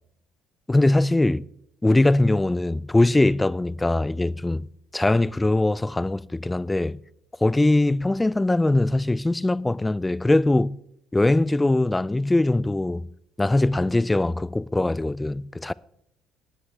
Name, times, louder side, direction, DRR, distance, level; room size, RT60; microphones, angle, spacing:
voice 1, 0.7-1.5 1.8-4.7 4.9-7.0 7.4-10.8 11.1-13.1 13.4-15.7, left 2 dB, 10° left, 0.3 m, -21 dB
19.5 x 7.9 x 3.4 m
cardioid pair, 125°, 0 cm